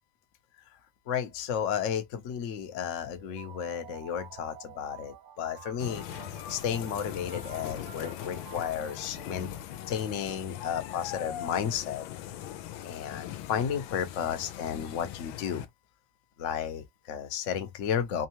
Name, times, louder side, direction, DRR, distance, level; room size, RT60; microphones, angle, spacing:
voice 1, 1.1-6.0 6.5-9.5 9.9-12.1 12.8-15.7 16.4-18.3, left 8 dB, 55° left, 0.9 m, -33 dB
sound 1, 3.2-10.0, right 9 dB, 70° right, 1.2 m, -49 dB
sound 2, 5.8-15.7, left 11 dB, 80° left, 1.3 m, -40 dB
3.6 x 3.2 x 3.0 m
omnidirectional pair, 2.3 m